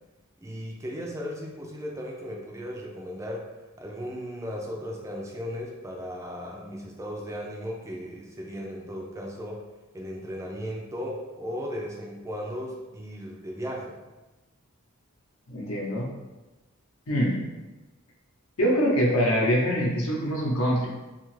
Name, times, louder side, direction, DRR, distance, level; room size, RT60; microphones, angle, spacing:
voice 1, 0.4-3.5 3.8-9.6 9.9-14.0, equal, 15° right, -2 dB, 0.3 m, -36 dB
voice 2, 15.5-16.1 17.1-17.4 18.6-20.9, equal, 70° left, -2 dB, 0.7 m, -24 dB
2.7 x 2.4 x 3.1 m, 1.1 s
head